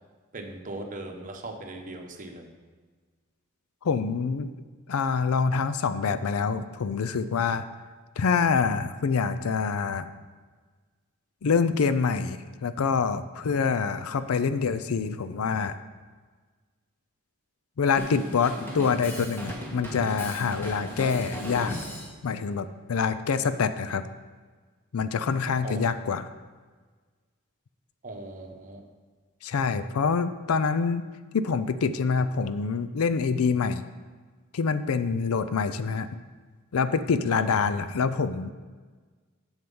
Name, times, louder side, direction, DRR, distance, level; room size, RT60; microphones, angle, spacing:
voice 1, 0.3-2.5 25.6-25.8 28.0-28.8 37.3-37.5, right 2 dB, 40° right, 3 dB, 1.0 m, -39 dB
voice 2, 3.8-4.5 4.9-7.7 8.2-10.1 11.4-15.7 17.8-21.8 22.2-24.0 24.9-26.3 29.4-31.1 31.3-33.8 34.5-36.1 36.7-38.5, left 5 dB, 80° left, 12 dB, 0.5 m, -26 dB
Drum kit, 18.0-22.1, equal, 10° left, 1.7 m, -37 dB
7.7 x 7.3 x 5.4 m, 1.4 s
head